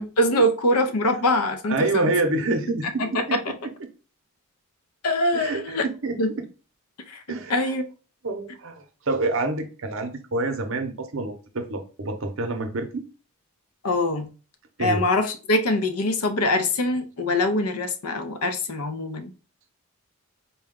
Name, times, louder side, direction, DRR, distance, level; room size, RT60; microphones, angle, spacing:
voice 1, 0.0-2.1 3.0-3.4 5.0-5.9 6.2-6.3 7.1-7.2 7.5-7.8 13.8-14.3 14.8-19.3, left 1 dB, 85° left, 0.6 m, -23 dB
voice 2, 1.7-3.4 5.3-6.5 7.3-7.7 8.2-13.0 14.8-15.0, right 2 dB, 60° right, 0.7 m, -27 dB
4.0 x 2.2 x 3.6 m
head